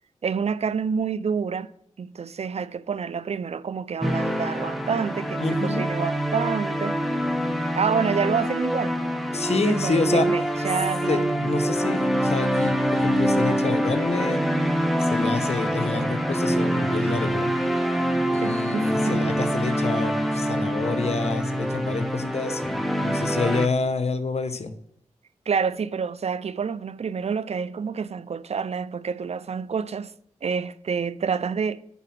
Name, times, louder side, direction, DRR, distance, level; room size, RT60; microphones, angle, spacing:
voice 1, 0.2-1.7 2.0-7.0 7.8-9.0 9.6-11.3 18.4-19.5 25.5-30.1 30.4-31.8, right 6 dB, 60° right, 0.5 m, -28 dB
sound 1, 4.0-23.7, equal, ahead, 1.5 m, -25 dB
voice 2, 5.4-5.8 9.3-10.3 11.1-14.4 15.0-17.5 18.3-24.7, left 4 dB, 60° left, 1.1 m, -28 dB
10.0 x 4.7 x 6.0 m
cardioid pair, 45°, 12 cm